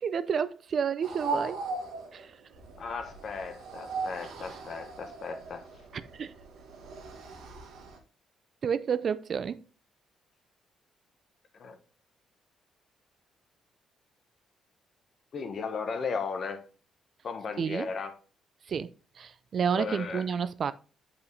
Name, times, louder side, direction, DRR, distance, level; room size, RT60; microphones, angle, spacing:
voice 1, 0.0-1.6 2.1-2.2 5.9-6.3 8.6-9.6 17.6-17.9 18.7-18.9 19.2-20.7, right 7 dB, 55° right, 0.4 m, -30 dB
sound 1, 1.0-8.0, right 4 dB, 85° right, 1.7 m, -39 dB
voice 2, 2.8-5.7 11.6-11.8 15.3-16.6 17.2-18.2 19.7-20.3, left 5 dB, 50° left, 1.2 m, -36 dB
8.3 x 5.0 x 3.2 m
cardioid pair, 90°, 0 cm